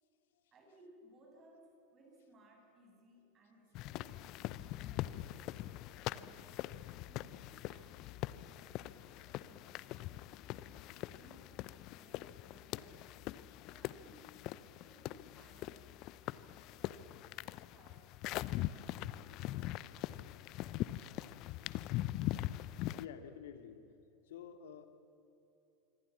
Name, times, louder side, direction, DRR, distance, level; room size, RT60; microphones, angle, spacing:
voice 1, 0.5-6.6 7.0-9.8 10.4-20.1 20.4-21.3, right 1 dB, 30° right, 1 dB, 7.8 m, -64 dB
sound 1, 3.8-23.1, left 15 dB, 45° left, 0.7 m, -42 dB
voice 2, 23.0-23.8 24.2-24.9, left 8 dB, 65° left, 8 dB, 2.2 m, -49 dB
26.0 x 25.0 x 7.4 m, 2.9 s
figure-of-eight pair, 90°, 0 cm